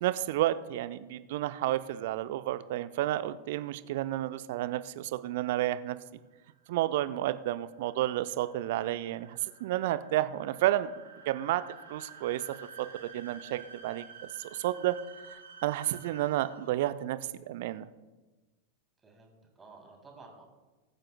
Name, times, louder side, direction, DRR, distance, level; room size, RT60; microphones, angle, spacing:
voice 1, 0.0-6.0 6.7-10.9 11.3-11.6 11.9-12.4 12.8-14.0 14.4-14.9 15.3-17.2 17.5-17.9, right 14 dB, 50° right, 14 dB, 0.5 m, -31 dB
sound 1, 6.4-17.0, right 5 dB, 70° right, 3.8 m, -51 dB
voice 2, 19.0-20.4, right 3 dB, 15° right, 0 dB, 3.1 m, -53 dB
21.5 x 8.9 x 2.2 m, 1.2 s
figure-of-eight pair, 90°, 0 cm